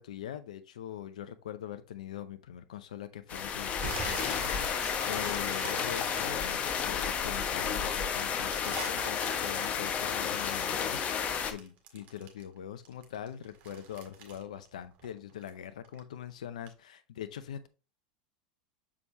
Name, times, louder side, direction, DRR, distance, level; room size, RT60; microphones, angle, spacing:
voice 1, 0.0-17.7, left 10 dB, 75° left, 0.6 m, -43 dB
sound 1, 3.3-11.5, left 7 dB, 35° left, 1.0 m, -32 dB
sound 2, 3.8-7.4 7.8-12.6 12.8-15.6 15.8-16.2 16.7-16.8, right 6 dB, 45° right, 1.8 m, -44 dB
7.0 x 4.9 x 2.9 m
hypercardioid pair, 90°, 4 cm